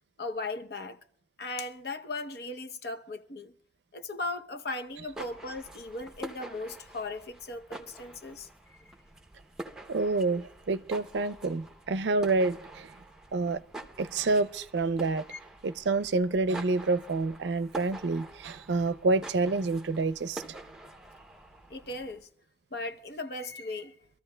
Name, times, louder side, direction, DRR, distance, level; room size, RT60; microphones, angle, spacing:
voice 1, 0.2-1.0 1.4-3.5 3.9-8.8 15.3-15.4 21.7-22.3 22.7-24.0, left 2 dB, 65° left, 0.8 m, -37 dB
sound 1, 4.9-22.2, right 2 dB, 5° right, 0.7 m, -47 dB
voice 2, 9.9-12.9 13.3-13.6 14.0-15.2 15.6-20.6, right 3 dB, 80° right, 0.5 m, -28 dB
25.5 x 13.5 x 2.2 m
head